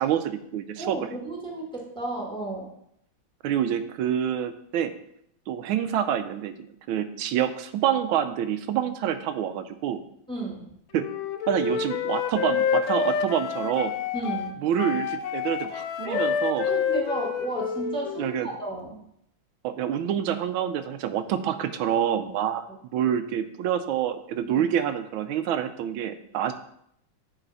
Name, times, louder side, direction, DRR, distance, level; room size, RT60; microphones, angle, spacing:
voice 1, 0.0-1.0 3.4-4.9 5.5-6.5 6.9-10.0 10.9-11.1 11.5-13.9 14.6-16.7 18.2-18.5 19.6-22.6 22.9-26.5, right 9 dB, 90° right, 10 dB, 1.4 m, -27 dB
voice 2, 0.8-2.7 10.3-10.7 14.1-14.6 16.0-16.3 16.7-19.0 24.5-24.6, right 2 dB, 5° left, -1 dB, 1.1 m, -33 dB
Wind instrument woodwind instrument, 11.0-18.4, left 7 dB, 85° left, 1.4 m, -28 dB
8.9 x 4.1 x 4.0 m, 0.72 s
omnidirectional pair, 2.2 m